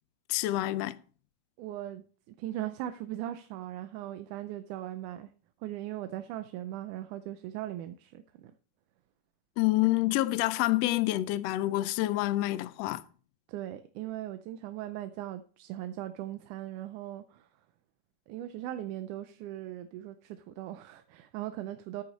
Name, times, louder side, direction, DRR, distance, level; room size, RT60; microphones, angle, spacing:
voice 1, 0.3-1.0 9.6-13.0, left 17 dB, 90° left, 1.4 m, -27 dB
voice 2, 1.6-2.0 2.4-5.3 5.6-8.5 13.5-17.5 18.3-22.0, right 13 dB, 80° right, 2.1 m, -39 dB
13.5 x 8.2 x 4.1 m
omnidirectional pair, 3.7 m